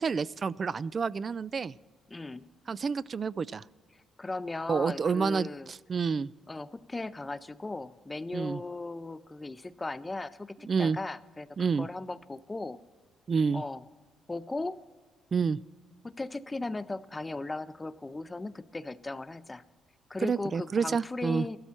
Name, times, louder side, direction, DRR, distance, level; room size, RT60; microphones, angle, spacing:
voice 1, 0.0-1.7 2.7-3.6 4.7-6.3 8.3-8.6 10.6-11.0 11.6-11.9 13.3-13.6 15.3-15.6 20.2-21.5, right 5 dB, 40° right, 20 dB, 0.3 m, -29 dB
voice 2, 2.1-2.5 4.2-5.7 6.5-11.5 11.8-12.8 13.5-13.8 14.3-14.8 16.0-19.6 20.1-21.6, left 2 dB, 20° left, 15 dB, 0.5 m, -37 dB
15.0 x 12.5 x 4.4 m, 1.5 s
cardioid pair, 90°, 0 cm